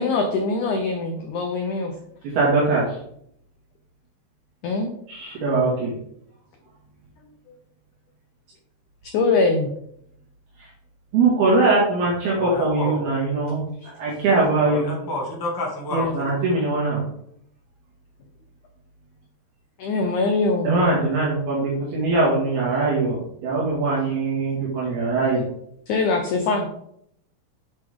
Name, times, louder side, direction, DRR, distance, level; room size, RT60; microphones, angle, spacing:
voice 1, 0.0-1.9 4.6-4.9 9.1-9.7 19.8-20.7 25.9-26.7, left 3 dB, 85° left, 4 dB, 1.7 m, -22 dB
voice 2, 2.3-2.8 5.1-5.9 11.1-13.6 14.0-14.9 15.9-17.0 20.6-25.5, right 3 dB, 70° right, -6 dB, 3.9 m, -21 dB
voice 3, 12.3-13.1 14.6-16.3, left 1 dB, 10° left, -3 dB, 0.9 m, -29 dB
8.4 x 7.6 x 3.7 m, 0.71 s
omnidirectional pair, 4.8 m